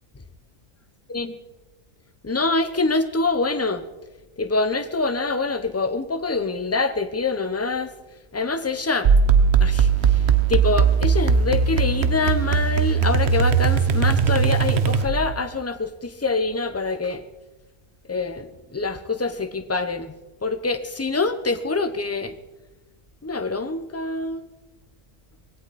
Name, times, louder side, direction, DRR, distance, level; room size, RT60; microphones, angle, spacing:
voice 1, 2.2-3.8 4.4-7.9 8.3-9.1 9.6-10.2 10.5-17.2 18.1-20.1 20.4-22.3 23.2-24.5, left 3 dB, 15° left, 8 dB, 0.8 m, -25 dB
sound 1, 9.0-15.4, right 6 dB, 55° right, 1.1 m, -19 dB
20.0 x 17.0 x 4.2 m, 1.1 s
omnidirectional pair, 1.4 m